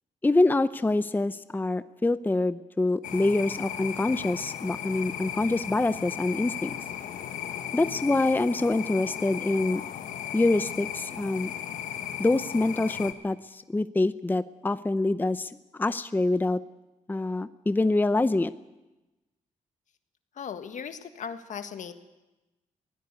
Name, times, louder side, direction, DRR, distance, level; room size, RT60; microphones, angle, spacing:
voice 1, 0.2-6.7 7.7-9.8 10.3-11.5 12.2-15.5 15.8-16.6 17.1-18.5, left 2 dB, 15° left, 13 dB, 0.7 m, -25 dB
sound 1, 3.0-13.1, left 10 dB, 90° left, 1.3 m, -36 dB
voice 2, 20.3-22.0, left 7 dB, 70° left, 8 dB, 1.6 m, -37 dB
23.0 x 16.5 x 8.3 m, 1.1 s
cardioid pair, 80°, 13 cm